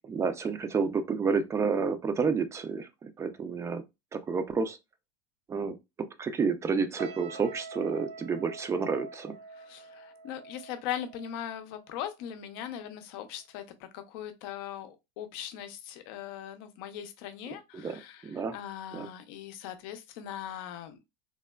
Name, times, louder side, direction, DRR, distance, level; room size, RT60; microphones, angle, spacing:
voice 1, 0.0-3.8 4.1-4.8 5.5-5.8 6.2-9.4 17.5-18.6 18.9-19.1, right 5 dB, 20° right, 0.4 m, -30 dB
sound 1, 7.0-12.3 12.6-12.9, right 4 dB, 85° right, 0.5 m, -46 dB
voice 2, 9.5-21.0, left 10 dB, 65° left, 0.5 m, -40 dB
3.3 x 2.0 x 2.2 m
supercardioid pair, 110°, 13 cm